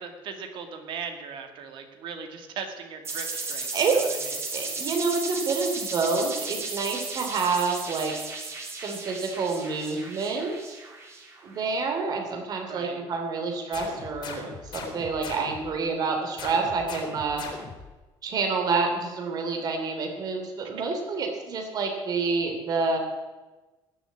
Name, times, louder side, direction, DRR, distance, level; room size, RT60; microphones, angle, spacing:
voice 1, 0.0-4.1 12.7-13.0, right 6 dB, 65° right, 5 dB, 2.4 m, -38 dB
sound 1, 3.0-11.6, right 3 dB, 30° right, 3.1 m, -35 dB
voice 2, 4.5-8.1 8.7-10.8 11.4-17.4 18.2-23.0, right 4 dB, 45° right, 3 dB, 3.1 m, -28 dB
sound 2, 13.7-15.8 16.4-17.9, left 5 dB, 55° left, 3.4 m, -39 dB
19.0 x 7.3 x 8.3 m, 1.2 s
cardioid pair, 150°, 9 cm